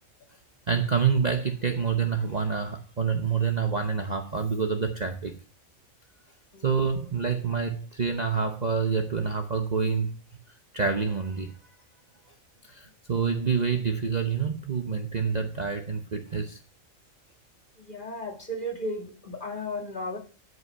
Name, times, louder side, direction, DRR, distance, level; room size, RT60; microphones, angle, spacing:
voice 1, 0.7-5.4 6.6-10.1 10.7-11.5 12.6-16.6, right 6 dB, 40° right, 0.8 m, -27 dB
voice 2, 17.8-20.2, left 1 dB, 40° left, 2.1 m, -34 dB
9.4 x 5.6 x 5.5 m
omnidirectional pair, 1.4 m